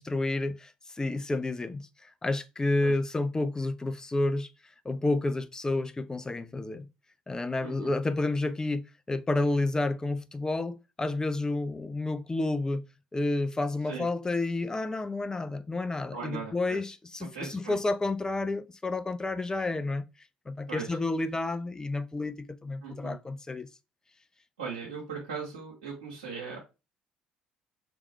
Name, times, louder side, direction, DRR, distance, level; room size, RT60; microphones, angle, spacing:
voice 1, 0.0-4.5 4.8-6.9 7.3-12.9 13.1-20.1 20.5-23.7, left 2 dB, 15° left, 0.5 m, -30 dB
voice 2, 16.1-16.8 17.2-17.8 20.7-20.9 22.8-23.1 24.6-26.6, right 5 dB, 80° right, 1.5 m, -39 dB
3.5 x 3.1 x 4.2 m
figure-of-eight pair, 55°, 4 cm